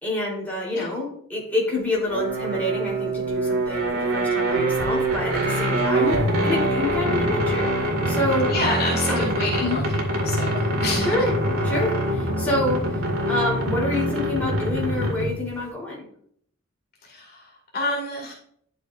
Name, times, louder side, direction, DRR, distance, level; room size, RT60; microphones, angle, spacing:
voice 1, 0.0-7.7 8.1-8.5 9.1-9.8 11.1-11.3 11.6-13.0 13.3-16.1, left 1 dB, 10° left, -5 dB, 3.4 m, -27 dB
sound 1, 2.1-15.5, right 1 dB, 90° right, 2.1 m, -24 dB
voice 2, 8.5-11.2 17.0-18.3, left 2 dB, 50° left, -2 dB, 2.2 m, -29 dB
11.5 x 6.4 x 2.5 m, 0.65 s
head